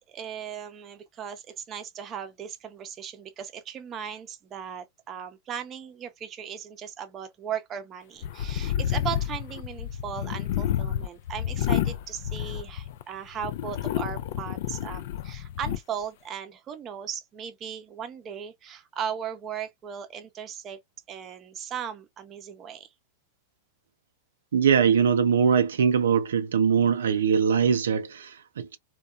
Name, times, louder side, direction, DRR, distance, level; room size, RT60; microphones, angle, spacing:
voice 1, 0.1-20.8 21.1-22.9, right 8 dB, 30° right, 0.6 m, -37 dB
sound 1, 8.2-13.0 13.4-15.8, left 11 dB, 65° left, 0.3 m, -30 dB
voice 2, 24.5-28.8, right 7 dB, 85° right, 0.3 m, -22 dB
2.7 x 2.2 x 2.3 m
hypercardioid pair, 120°, 0 cm